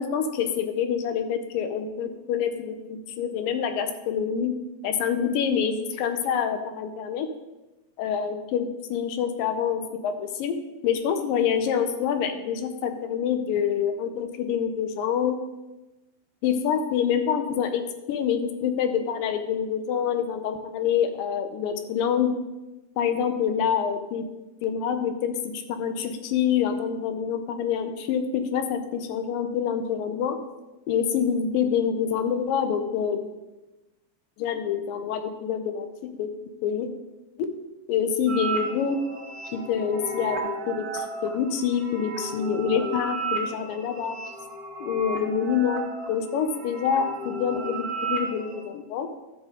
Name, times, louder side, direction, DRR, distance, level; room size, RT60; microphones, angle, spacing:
voice 1, 0.0-4.6 4.8-7.3 8.0-10.6 10.8-15.4 16.4-17.8 18.1-22.3 23.0-24.3 24.6-30.4 30.9-33.3 34.4-36.3 36.6-36.9 37.4-37.5 37.9-39.0 39.5-44.2 44.8-45.8 46.1-49.1, left 7 dB, 85° left, 8 dB, 2.4 m, -26 dB
sound 1, 38.3-48.6, right 3 dB, 40° right, 1.5 m, -34 dB
12.0 x 6.2 x 3.7 m, 1.1 s
omnidirectional pair, 3.9 m